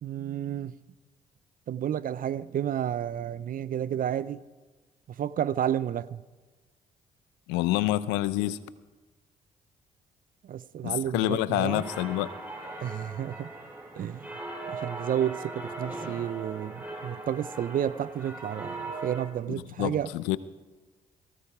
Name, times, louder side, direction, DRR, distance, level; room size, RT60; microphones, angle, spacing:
voice 1, 0.0-0.8 1.7-4.4 5.1-6.2 10.4-11.8 12.8-13.5 14.0-14.3 14.7-20.1, right 10 dB, 55° right, 0.6 m, -31 dB
voice 2, 7.5-8.6 10.8-12.3 19.5-20.4, left 16 dB, 80° left, 0.7 m, -27 dB
sound 1, 11.7-19.2, right 2 dB, 10° right, 7.5 m, -39 dB
18.5 x 16.0 x 4.9 m
hypercardioid pair, 45°, 17 cm